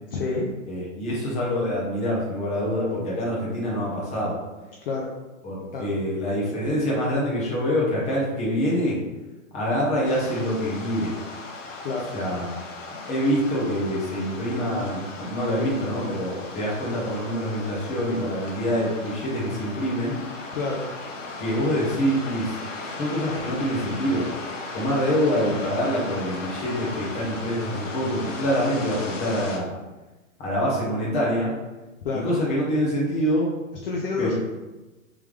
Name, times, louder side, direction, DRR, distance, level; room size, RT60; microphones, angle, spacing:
voice 1, 0.1-0.5 4.8-5.1 5.7-5.9 11.8-12.1 20.5-20.9 32.0-32.3 33.8-34.3, left 3 dB, 45° left, -2 dB, 0.6 m, -28 dB
voice 2, 0.7-4.4 5.4-9.0 9.5-11.1 12.1-12.6 13.0-20.2 21.4-22.6 22.8-24.2 24.7-29.7 30.4-31.5 32.1-33.5 34.2-34.3, equal, 15° left, -6 dB, 1.0 m, -25 dB
sound 1, 10.0-29.6, left 3 dB, 65° left, 0.9 m, -37 dB
3.4 x 3.4 x 3.2 m, 1.1 s
hypercardioid pair, 150°, 41 cm